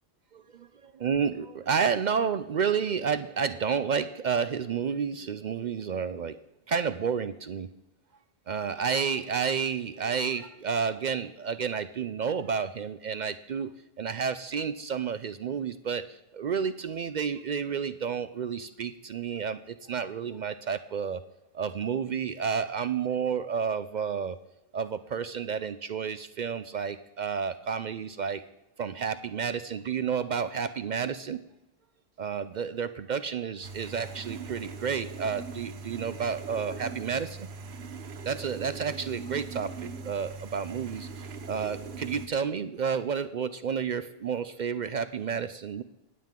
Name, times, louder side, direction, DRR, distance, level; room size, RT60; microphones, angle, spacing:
voice 1, 0.3-0.7 1.0-6.4 6.7-7.7 8.5-21.2 21.5-24.4 24.7-28.4 28.8-31.4 32.2-37.5 38.2-45.8, right 6 dB, 55° right, 12 dB, 0.5 m, -31 dB
sound 1, 33.6-42.3, right 4 dB, 80° right, 1.1 m, -41 dB
20.0 x 7.5 x 3.7 m, 0.94 s
omnidirectional pair, 1.1 m